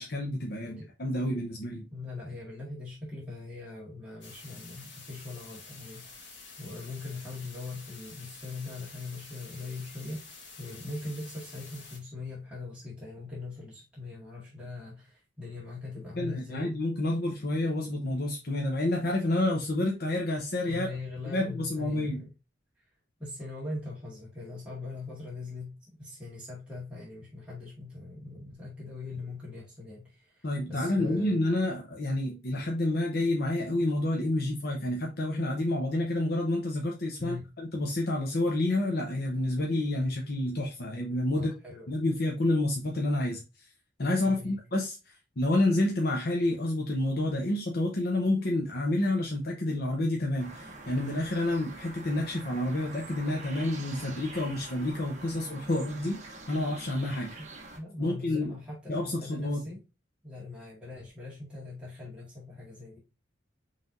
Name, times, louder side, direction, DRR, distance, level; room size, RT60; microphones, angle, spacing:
voice 1, 0.0-1.9 16.2-20.9 21.3-22.2 30.4-41.5 41.9-43.7 44.0-57.3 58.0-58.6 58.9-59.6, left 1 dB, 55° left, 0.8 m, -29 dB
voice 2, 1.9-16.7 20.7-22.3 23.2-31.4 37.2-37.5 41.3-41.9 44.2-44.6 53.9-54.2 57.4-57.5 57.7-59.8 60.2-63.0, left 3 dB, 5° right, 1.9 m, -41 dB
sound 1, 4.2-12.0, left 4 dB, 70° left, 1.7 m, -49 dB
sound 2, 50.4-57.8, right 2 dB, 40° right, 1.0 m, -45 dB
5.6 x 3.4 x 2.6 m
head